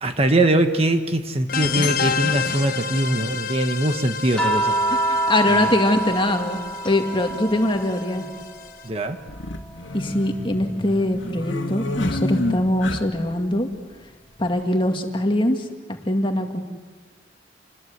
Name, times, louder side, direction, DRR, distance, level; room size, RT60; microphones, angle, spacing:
voice 1, 0.0-4.7 5.5-5.7 8.8-9.2, right 1 dB, 30° right, 7 dB, 1.2 m, -22 dB
sound 1, 0.8-0.9 2.4-2.5 3.9-4.0 4.2-4.3 6.1-6.3 6.5-6.6 7.3-7.8 9.2-13.4, left 1 dB, 90° left, 2.1 m, -30 dB
sound 2, 1.5-8.8, left 6 dB, 50° left, 1.2 m, -30 dB
sound 3, 4.4-8.9 9.2-10.8 12.4-12.5, right 2 dB, 5° left, 2.5 m, -27 dB
voice 2, 4.9-6.6 6.8-8.3 9.9-13.7 14.4-16.6, left 1 dB, 25° left, 4 dB, 2.0 m, -22 dB
28.0 x 20.5 x 8.0 m, 1.4 s
head